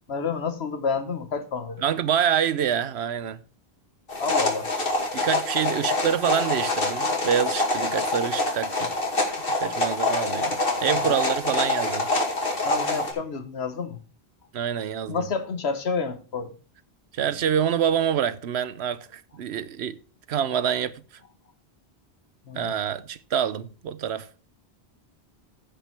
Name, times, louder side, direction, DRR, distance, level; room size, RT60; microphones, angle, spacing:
voice 1, 0.1-1.8 4.2-4.7 10.8-11.2 12.6-14.0 15.1-16.6 22.5-22.7, left 5 dB, 80° left, 1.4 m, -29 dB
voice 2, 1.8-3.4 5.1-8.9 9.6-12.1 14.5-15.3 17.1-20.0 20.3-21.0 22.5-24.3, right 8 dB, 85° right, 1.0 m, -26 dB
sound 1, 4.1-13.1, left 2 dB, 60° left, 2.5 m, -25 dB
15.5 x 5.2 x 4.5 m
omnidirectional pair, 1.1 m